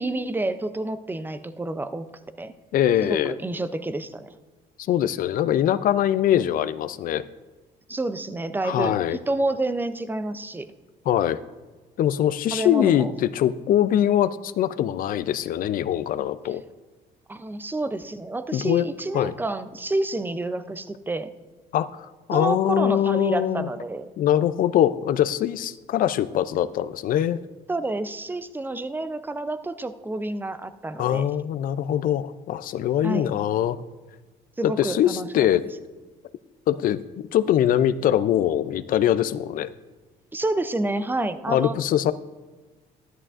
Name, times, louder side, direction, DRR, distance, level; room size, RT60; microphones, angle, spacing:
voice 1, 0.0-2.1 2.4-2.5 3.1-4.3 7.9-10.7 12.5-13.1 17.3-21.3 22.3-24.1 27.7-31.3 33.0-33.3 34.6-35.5 40.3-41.8, right 2 dB, 10° right, 12 dB, 0.4 m, -29 dB
voice 2, 2.7-3.3 4.9-7.3 8.6-9.2 11.1-11.4 12.0-16.6 18.5-18.9 19.1-19.3 21.7-23.7 24.2-27.4 31.0-33.8 34.6-35.6 36.7-37.0 37.3-39.7 41.5-42.1, left 11 dB, 55° left, 15 dB, 0.4 m, -22 dB
12.0 x 11.0 x 2.5 m, 1.3 s
cardioid pair, 110°, 17 cm